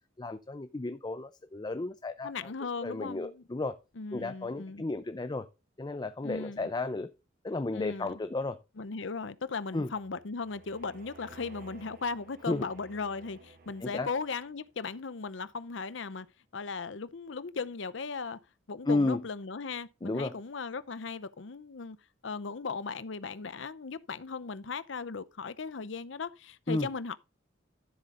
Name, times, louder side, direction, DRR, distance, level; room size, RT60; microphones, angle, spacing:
voice 1, 0.2-2.5 2.8-3.7 4.1-5.5 5.8-7.1 7.4-8.6 9.7-9.9 12.5-12.7 13.8-14.1 18.9-19.2 20.0-20.4 26.7-26.9, left 2 dB, 20° left, 0.5 m, -33 dB
voice 2, 2.2-3.4 4.0-4.8 6.2-6.7 7.7-8.1 8.8-16.3 16.5-18.4 18.7-22.0 22.2-27.2, left 4 dB, 70° left, 0.7 m, -37 dB
sound 1, 10.0-14.6, right 2 dB, 50° right, 1.6 m, -54 dB
13.5 x 7.6 x 2.5 m
head